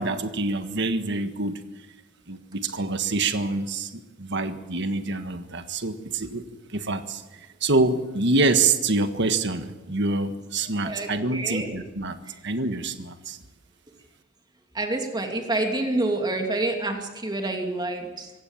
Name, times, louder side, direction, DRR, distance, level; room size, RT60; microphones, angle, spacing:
voice 1, 0.0-1.6 2.3-6.4 6.7-12.2 12.4-13.4, right 3 dB, 60° right, 8 dB, 1.6 m, -26 dB
voice 2, 10.8-11.7 14.7-18.3, right 2 dB, 20° right, 3 dB, 2.6 m, -28 dB
25.0 x 16.5 x 7.4 m, 1.1 s
head